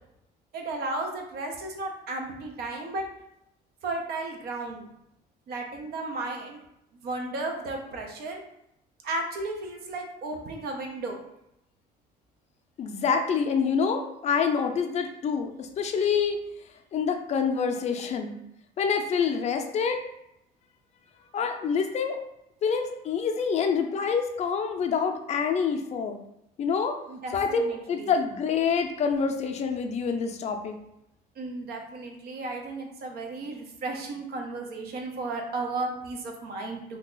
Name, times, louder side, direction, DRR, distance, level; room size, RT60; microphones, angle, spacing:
voice 1, 0.5-3.0 3.8-4.9 5.5-6.6 7.0-8.4 9.0-11.2 27.1-28.2 31.4-37.0, right 2 dB, 70° right, 3 dB, 0.7 m, -34 dB
voice 2, 12.8-16.4 16.9-18.4 18.8-20.0 21.3-22.2 22.6-26.2 26.6-27.0 27.3-30.8, left 6 dB, 40° left, 5 dB, 0.4 m, -26 dB
2.7 x 2.3 x 3.8 m, 0.81 s
cardioid pair, 110°, 17 cm